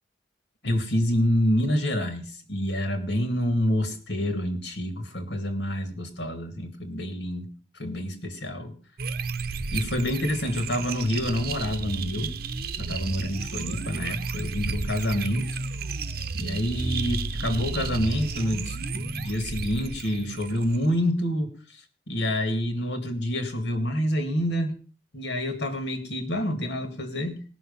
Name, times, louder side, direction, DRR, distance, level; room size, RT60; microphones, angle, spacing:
voice 1, 0.6-7.5 7.8-8.7 9.7-12.3 12.8-15.5 16.3-21.5 22.1-24.8 25.1-27.4, equal, 70° left, 6 dB, 2.2 m, -27 dB
sound 1, 9.0-21.0, right 4 dB, 55° right, 0.8 m, -32 dB
18.0 x 6.3 x 5.5 m, 0.39 s
head